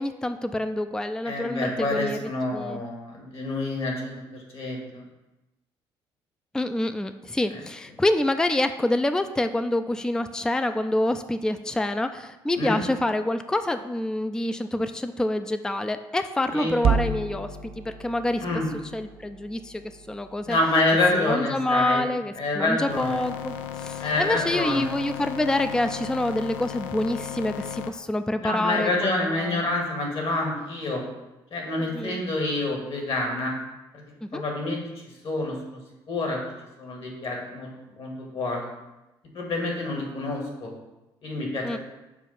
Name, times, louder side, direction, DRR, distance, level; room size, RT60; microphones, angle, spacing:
voice 1, 0.0-2.8 6.5-18.5 18.9-20.6 21.1-29.6 31.9-32.2 34.2-34.4 41.6-41.8, left 1 dB, 5° left, 9 dB, 0.4 m, -27 dB
voice 2, 1.2-5.0 7.5-7.6 12.6-12.8 16.5-16.7 18.4-18.7 20.5-22.0 22.4-23.2 24.0-24.9 28.4-31.0 31.5-33.5 34.3-35.8 36.1-36.4 36.8-37.7 38.0-38.7 39.3-40.7 41.2-41.8, left 2 dB, 55° left, 0 dB, 1.9 m, -27 dB
sound 1, 16.8-21.2, right 5 dB, 55° right, 0.5 m, -31 dB
sound 2, 22.9-27.9, left 9 dB, 85° left, 0.4 m, -35 dB
6.9 x 2.4 x 5.6 m, 1.0 s
hypercardioid pair, 55°, 12 cm